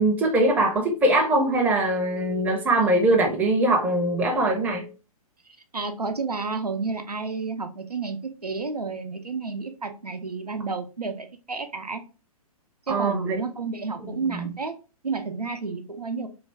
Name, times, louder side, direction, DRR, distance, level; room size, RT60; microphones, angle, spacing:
voice 1, 0.0-4.9 12.9-13.4 14.0-14.5, right 1 dB, 10° right, 0.5 m, -22 dB
voice 2, 5.5-12.0 12.9-14.8 15.0-16.3, right 4 dB, 90° right, 0.6 m, -31 dB
3.3 x 2.3 x 3.2 m
figure-of-eight pair, 120°, 19 cm